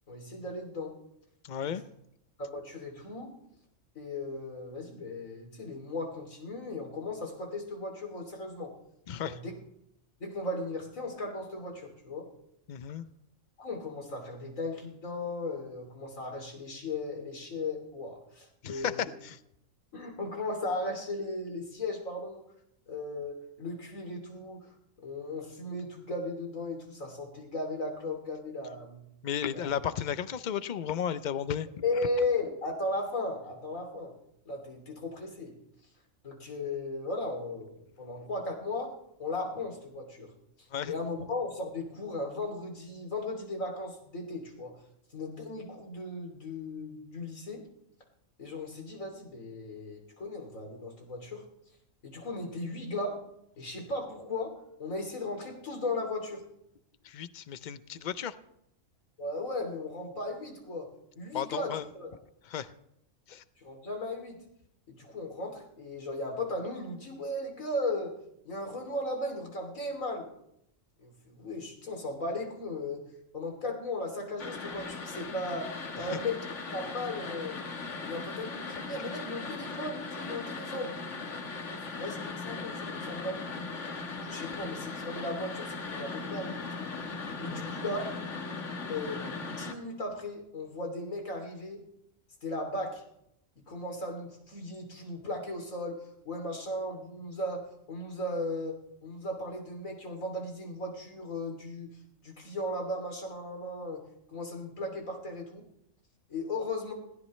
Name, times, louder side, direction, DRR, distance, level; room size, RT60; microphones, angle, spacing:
voice 1, 0.1-1.0 1.6-1.7 2.4-3.3 3.9-8.8 9.2-9.5 10.2-12.3 13.6-19.1 19.9-22.4 22.9-24.7 25.0-29.0 29.5-29.7 31.8-34.1 34.4-35.5 36.2-38.9 39.2-40.3 40.9-44.8 45.1-47.7 48.4-51.4 52.0-53.2 53.6-56.4 59.2-62.1 63.6-64.4 64.9-68.1 68.4-70.3 71.0-73.1 73.3-76.4 76.7-77.6 78.0-81.0 82.0-83.7 84.1-86.7 87.4-88.0 88.9-91.8 92.4-93.0 93.7-101.9 102.2-104.0 104.3-105.6 106.3-106.9, left 2 dB, 80° left, 1 dB, 3.3 m, -36 dB
voice 2, 1.4-1.8 9.1-9.4 12.7-13.1 18.6-19.4 29.2-31.7 40.7-40.9 57.0-58.3 61.3-61.9 62.4-62.7 63.3-63.4 76.0-76.1 87.5-87.7, left 9 dB, 50° left, 14 dB, 0.6 m, -34 dB
sound 1, 74.4-89.7, left 4 dB, 65° left, 1.7 m, -38 dB
21.0 x 16.5 x 3.2 m, 0.77 s
omnidirectional pair, 1.4 m